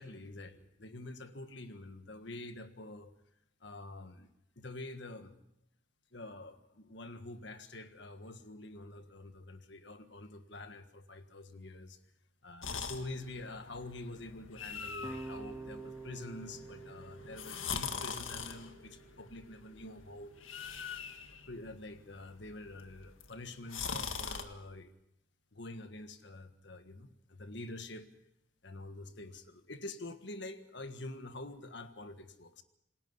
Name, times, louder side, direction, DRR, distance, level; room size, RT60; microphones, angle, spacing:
voice 1, 0.0-3.1 3.6-4.3 4.5-5.3 6.1-12.0 12.4-20.3 21.5-24.9 25.5-28.1 28.6-32.6, left 2 dB, 60° left, 1.6 m, -46 dB
sound 1, 12.6-24.4, left 6 dB, 85° left, 1.8 m, -43 dB
sound 2, 15.0-20.1, right 3 dB, 10° right, 0.8 m, -49 dB
28.0 x 20.5 x 5.5 m
head